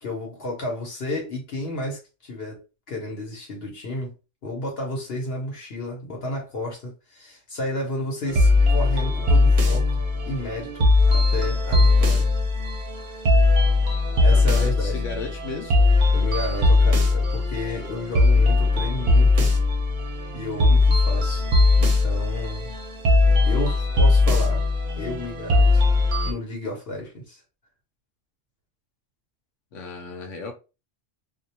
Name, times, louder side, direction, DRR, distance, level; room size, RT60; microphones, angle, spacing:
voice 1, 0.0-2.6 2.9-4.1 4.4-9.9 10.2-12.3 14.2-15.0 16.1-19.5 20.3-21.5 21.8-22.7 23.4-24.6 25.0-25.8 26.2-27.4, left 1 dB, 60° left, 1.0 m, -32 dB
sound 1, 8.3-26.3, left 2 dB, 50° right, 0.6 m, -19 dB
voice 2, 14.3-15.8 29.7-30.5, left 4 dB, 85° left, 1.0 m, -35 dB
2.3 x 2.1 x 2.8 m
omnidirectional pair, 1.3 m